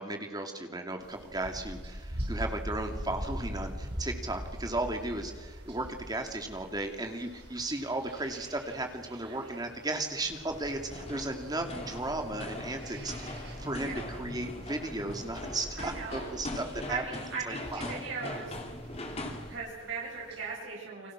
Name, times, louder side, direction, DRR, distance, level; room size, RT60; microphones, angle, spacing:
voice 1, 0.0-13.3 13.6-18.0, right 2 dB, 20° right, 4 dB, 2.6 m, -35 dB
sound 1, 1.0-20.6, equal, 55° right, 5.8 m, -43 dB
voice 2, 9.3-9.6 13.6-14.2 15.8-16.3 16.9-18.5 19.5-21.1, right 5 dB, 75° right, -4 dB, 7.7 m, -39 dB
sound 2, 10.5-19.6, left 1 dB, 30° left, 3.1 m, -41 dB
30.0 x 23.5 x 6.2 m, 1.4 s
head